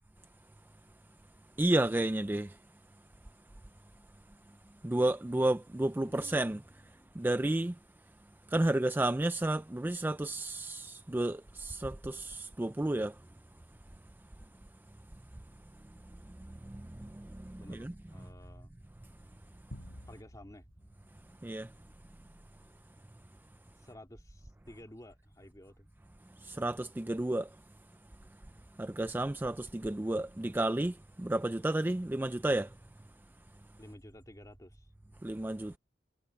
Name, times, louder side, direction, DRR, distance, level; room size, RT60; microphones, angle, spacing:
voice 1, 1.6-2.6 4.8-7.8 8.5-13.2 15.8-18.3 21.4-21.7 26.3-27.6 28.8-32.8 35.2-35.8, right 1 dB, 10° right, 0.4 m, -32 dB
voice 2, 6.0-6.6 6.9-7.1 17.6-18.7 20.1-20.6 23.8-25.9 33.8-34.9, left 1 dB, 20° left, 2.7 m, -53 dB
sound 1, 19.7-22.2, equal, 85° left, 4.2 m, -52 dB
head